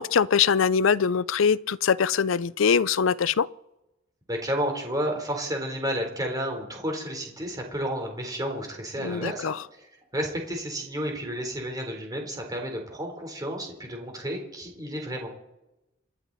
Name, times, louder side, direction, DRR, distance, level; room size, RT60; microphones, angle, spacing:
voice 1, 0.0-3.5 9.0-9.6, left 6 dB, 85° left, 0.5 m, -23 dB
voice 2, 4.3-15.3, equal, 20° right, 3.8 m, -31 dB
28.5 x 11.0 x 4.1 m
head